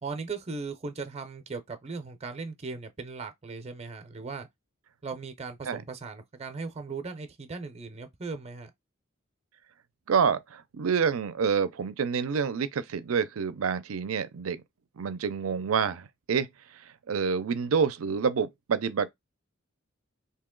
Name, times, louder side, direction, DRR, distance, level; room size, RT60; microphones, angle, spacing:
voice 1, 0.0-4.5 5.0-8.7, right 4 dB, 30° right, 0.6 m, -38 dB
voice 2, 10.1-14.6 15.0-16.5 17.1-19.1, right 6 dB, 80° right, 0.5 m, -27 dB
2.9 x 2.8 x 3.7 m
head